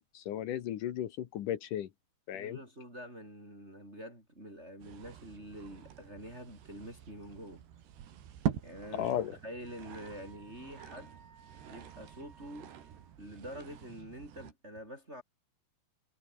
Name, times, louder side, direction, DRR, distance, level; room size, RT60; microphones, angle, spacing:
voice 1, 0.0-1.9 2.3-2.6 8.9-9.4, left 11 dB, 65° left, 2.4 m, -35 dB
voice 2, 2.3-7.6 8.6-9.1 9.4-11.1 11.7-12.7 13.2-15.2, equal, 15° right, 8.2 m, -46 dB
sound 1, 4.8-14.5, right 10 dB, 85° right, 4.6 m, -44 dB
Wind instrument woodwind instrument, 9.7-13.1, right 5 dB, 60° right, 7.4 m, -60 dB
omnidirectional pair, 4.8 m